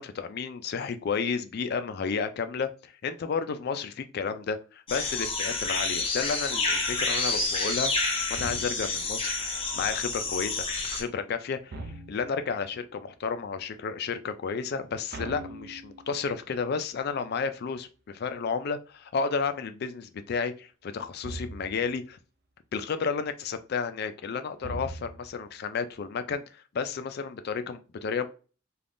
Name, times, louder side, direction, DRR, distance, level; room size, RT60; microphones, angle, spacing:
voice 1, 0.0-7.9 8.3-22.2 22.7-28.3, left 5 dB, 55° left, 0.4 m, -32 dB
sound 1, 4.9-11.0, left 3 dB, 30° left, 0.7 m, -29 dB
sound 2, 8.4-9.1 11.7-12.5 15.1-16.3 21.2-21.9 24.6-25.4, right 2 dB, 55° right, 0.4 m, -40 dB
3.4 x 2.4 x 2.5 m
head